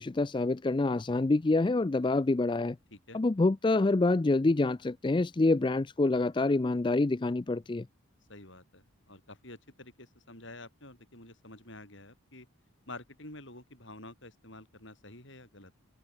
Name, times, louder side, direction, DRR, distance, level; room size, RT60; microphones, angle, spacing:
voice 1, 0.0-2.8 3.1-7.9, left 2 dB, 20° left, 0.4 m, -26 dB
voice 2, 2.9-3.2 8.3-12.5 12.9-15.7, left 2 dB, 60° left, 7.7 m, -49 dB
head